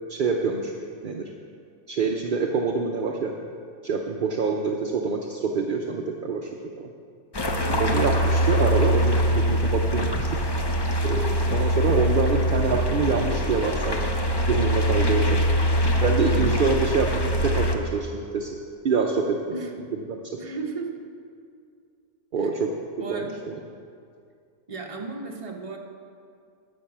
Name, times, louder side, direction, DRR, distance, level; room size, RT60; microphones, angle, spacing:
voice 1, 0.1-0.7 1.0-1.3 1.9-3.3 3.8-6.5 6.8-6.9 7.8-10.4 11.0-14.1 14.5-15.4 16.0-18.5 18.8-19.4 20.1-20.4 22.3-22.7 23.1-23.5, right 4 dB, 55° right, 1 dB, 0.6 m, -26 dB
sound 1, 7.3-17.7, equal, 35° left, 0.4 m, -23 dB
voice 2, 7.8-8.2 16.3-16.6 19.5-19.7 20.4-20.9 22.4-22.7 23.0-23.6 24.7-25.8, right 4 dB, 30° right, 1 dB, 0.8 m, -35 dB
10.0 x 6.3 x 7.2 m, 2.3 s
omnidirectional pair, 1.5 m